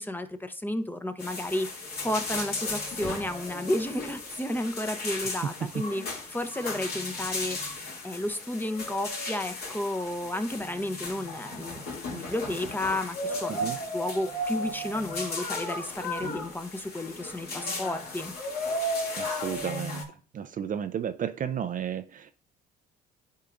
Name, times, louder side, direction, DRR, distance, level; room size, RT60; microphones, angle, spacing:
voice 1, 0.0-1.7 2.0-7.8 8.0-11.8 12.1-18.3, left 1 dB, 10° left, 0.8 m, -32 dB
sound 1, 1.2-20.0, left 1 dB, 50° left, 2.5 m, -35 dB
voice 2, 19.2-20.0 20.3-22.3, right 8 dB, 40° right, 0.5 m, -32 dB
10.5 x 4.6 x 2.6 m
supercardioid pair, 65°, 20 cm